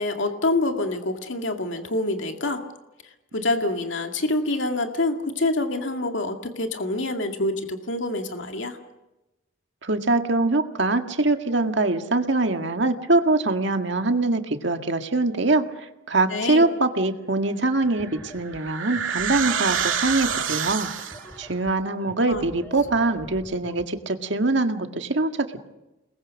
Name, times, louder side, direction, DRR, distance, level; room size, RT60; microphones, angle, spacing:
voice 1, 0.0-2.6 3.3-8.8 16.3-16.7 22.2-22.4, left 2 dB, 70° left, 4 dB, 2.2 m, -26 dB
voice 2, 9.8-15.7 16.1-20.9 21.4-25.5, right 2 dB, 65° right, 6 dB, 1.9 m, -23 dB
sound 1, 17.8-23.8, equal, 10° left, 3.2 m, -45 dB
sound 2, 17.9-21.4, right 7 dB, 80° right, 2.5 m, -27 dB
29.0 x 21.0 x 6.4 m, 0.97 s
head